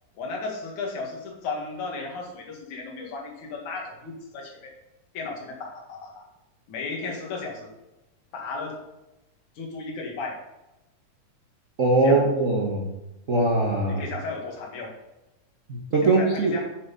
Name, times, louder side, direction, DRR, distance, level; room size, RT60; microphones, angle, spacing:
voice 1, 0.2-4.7 5.1-6.3 6.7-7.7 8.3-8.8 9.6-10.4 12.0-12.2 13.9-15.0 16.2-16.7, left 3 dB, 65° left, 0 dB, 3.4 m, -34 dB
voice 2, 11.8-12.9 13.3-14.0 15.7-16.6, right 2 dB, 55° right, -1 dB, 0.8 m, -21 dB
9.4 x 8.2 x 4.1 m, 0.97 s
omnidirectional pair, 3.7 m